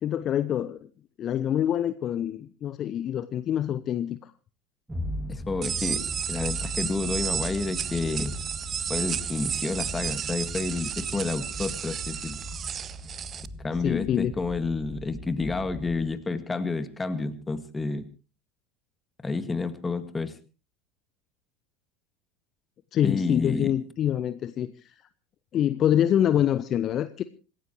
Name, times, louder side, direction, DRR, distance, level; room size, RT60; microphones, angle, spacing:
voice 1, 0.0-0.9 1.2-4.3 13.8-14.3 22.9-24.9 25.5-27.2, left 10 dB, 40° left, 14 dB, 0.7 m, -26 dB
sound 1, 4.9-16.1, equal, 10° right, 2.3 m, -38 dB
voice 2, 5.3-8.4 8.9-12.4 13.6-18.1 19.2-20.3 23.0-23.7, left 3 dB, 15° left, 11 dB, 1.9 m, -30 dB
sound 2, 5.6-13.5, right 8 dB, 30° right, 0.8 m, -32 dB
26.5 x 15.0 x 3.1 m, 0.34 s
figure-of-eight pair, 75°, 0 cm